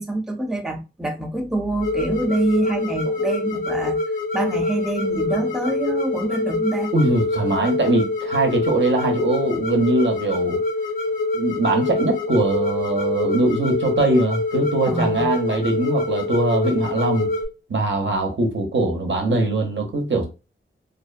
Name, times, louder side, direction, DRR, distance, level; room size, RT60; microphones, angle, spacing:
voice 1, 0.0-4.0 4.3-6.9 14.9-15.3, right 2 dB, ahead, 0.5 m, -25 dB
sound 1, 1.8-17.4, left 2 dB, 65° left, 1.2 m, -25 dB
voice 2, 6.9-10.6 11.3-17.3 17.7-20.3, right 2 dB, 60° right, 0.6 m, -21 dB
2.4 x 2.1 x 2.4 m
wide cardioid pair, 85°, 21 cm